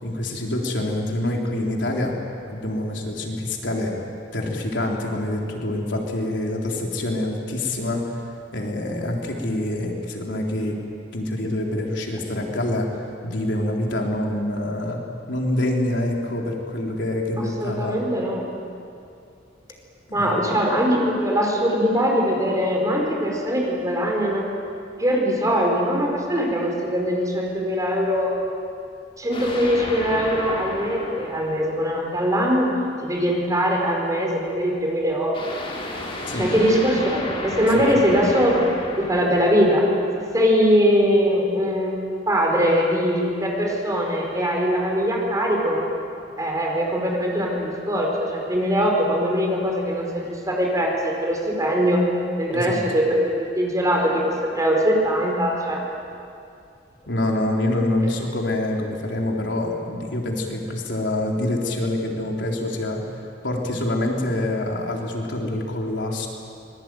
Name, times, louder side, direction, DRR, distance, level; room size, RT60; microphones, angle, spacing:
voice 1, 0.0-2.1 2.5-3.9 4.3-8.2 8.5-10.8 11.1-12.9 13.2-15.0 15.3-18.0 20.1-20.5 36.3-36.5 37.7-37.9 52.5-52.8 57.1-63.0 63.4-66.3, left 1 dB, 80° left, 0 dB, 3.8 m, -26 dB
voice 2, 17.4-18.6 20.1-24.5 25.0-28.3 29.2-32.7 33.0-35.6 36.3-39.9 40.2-45.8 46.4-52.0 52.4-55.8, equal, 20° right, 0 dB, 4.8 m, -22 dB
sound 1, 29.3-32.4 35.3-40.5, left 1 dB, 30° left, 3.7 m, -33 dB
25.0 x 21.5 x 9.2 m, 2.5 s
head